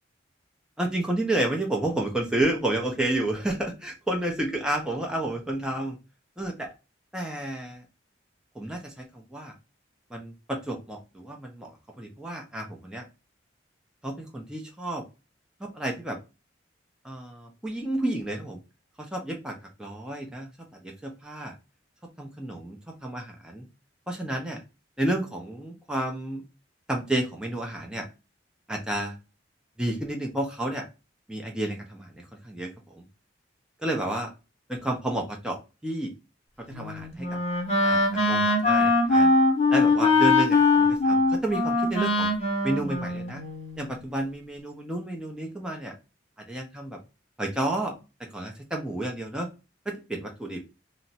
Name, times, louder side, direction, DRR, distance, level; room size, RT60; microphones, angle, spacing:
voice 1, 0.8-6.0 6.4-6.7 7.1-7.8 8.5-9.5 10.1-11.7 12.0-13.0 14.0-15.0 15.6-16.2 17.0-18.6 19.0-20.5 20.8-21.5 22.2-23.7 24.1-24.6 25.0-26.4 26.9-28.1 28.7-29.1 29.8-30.9 31.3-33.0 33.8-34.3 34.7-36.1 36.7-37.4 37.8-39.3 39.7-42.3 42.6-43.4 43.8-45.9 46.5-47.0 47.4-47.9 48.3-49.5 49.9-50.6, right 1 dB, 5° right, 1 dB, 0.5 m, -31 dB
Wind instrument woodwind instrument, 36.7-43.8, left 3 dB, 35° left, 0.8 m, -22 dB
2.4 x 2.0 x 3.9 m, 0.29 s
head